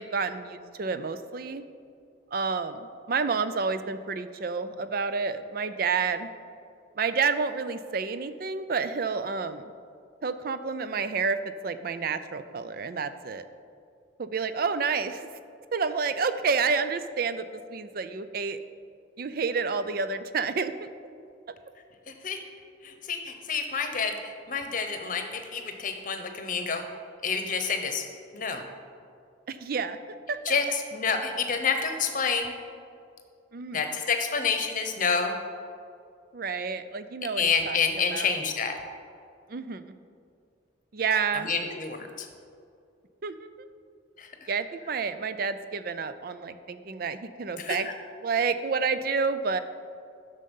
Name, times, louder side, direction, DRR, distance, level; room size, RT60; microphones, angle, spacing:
voice 1, 0.0-1.6 2.3-6.3 7.0-9.7 10.2-13.4 14.2-15.3 15.7-18.6 19.2-20.9 29.5-30.0 30.3-30.4 33.5-33.9 36.3-37.8 38.1-38.4 39.5-39.9 40.9-41.5 43.2-43.7 44.5-47.9 48.2-49.6, right 5 dB, 50° right, 11 dB, 0.4 m, -29 dB
voice 2, 22.1-22.4 22.8-24.2 24.5-26.8 27.2-28.0 28.3-28.7 30.5-32.5 33.7-35.3 37.4-38.7 41.3-42.3 44.2-44.5 47.6-47.8, left 5 dB, 45° left, 6 dB, 0.9 m, -28 dB
11.0 x 6.6 x 5.5 m, 2.4 s
head